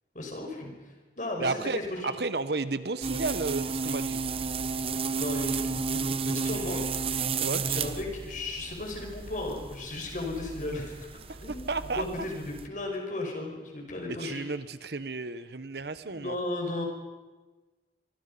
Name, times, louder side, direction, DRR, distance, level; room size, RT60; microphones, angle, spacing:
voice 1, 0.1-1.6 1.9-2.0 5.1-7.0 7.6-14.4 16.0-16.8, left 2 dB, 45° left, 2 dB, 5.5 m, -35 dB
voice 2, 1.4-4.3 7.4-7.7 11.3-12.0 14.1-16.4, right 3 dB, 65° right, 13 dB, 1.0 m, -33 dB
sound 1, 3.0-12.7, right 5 dB, 30° right, 0.8 m, -33 dB
24.5 x 24.0 x 5.5 m, 1.2 s
head